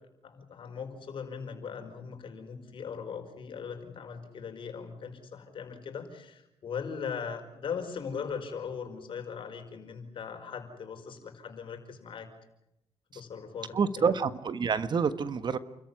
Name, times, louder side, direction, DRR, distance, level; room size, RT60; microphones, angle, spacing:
voice 1, 0.2-12.3 13.1-14.2, left 6 dB, 60° left, 6 dB, 5.2 m, -39 dB
voice 2, 13.7-15.6, right 6 dB, 50° right, 12 dB, 1.5 m, -27 dB
29.0 x 14.5 x 9.9 m, 0.87 s
cardioid pair, 80°, 10 cm